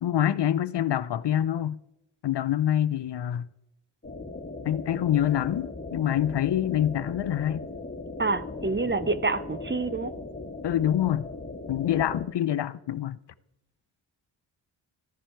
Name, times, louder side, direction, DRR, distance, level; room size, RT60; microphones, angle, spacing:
voice 1, 0.0-1.8 2.2-3.5 4.6-7.7 10.6-11.3 11.7-13.2, left 11 dB, 55° left, 0.6 m, -26 dB
sound 1, 4.0-12.2, left 2 dB, 20° left, 2.1 m, -38 dB
voice 2, 8.2-10.1, right 3 dB, 20° right, 0.8 m, -27 dB
13.5 x 10.0 x 4.5 m
cardioid pair, 50°, 50 cm